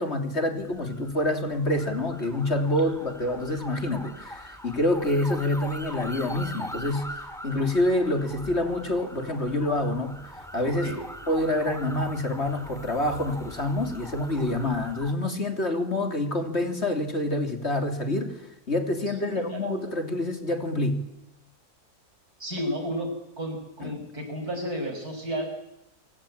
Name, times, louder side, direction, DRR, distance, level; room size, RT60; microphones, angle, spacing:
voice 1, 0.0-10.9 11.3-18.4 18.7-21.0 23.8-23.9, left 1 dB, 45° left, 6 dB, 3.5 m, -27 dB
sound 1, 0.6-15.1, equal, ahead, 3.3 m, -41 dB
voice 2, 19.2-19.7 22.4-25.5, equal, 75° right, 5 dB, 6.7 m, -32 dB
26.5 x 25.5 x 8.8 m, 0.86 s
omnidirectional pair, 1.6 m